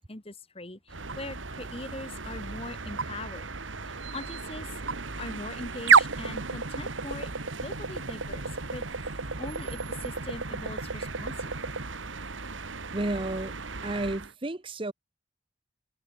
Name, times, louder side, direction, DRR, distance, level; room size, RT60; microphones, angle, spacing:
voice 1, 0.0-3.5 3.9-4.8 5.2-7.3 7.6-11.8, left 2 dB, 30° left, 2.3 m, -41 dB
sound 1, 0.9-14.3, right 5 dB, 90° right, 2.1 m, -31 dB
voice 2, 12.9-13.5 13.8-14.9, right 2 dB, 25° right, 0.9 m, -31 dB
head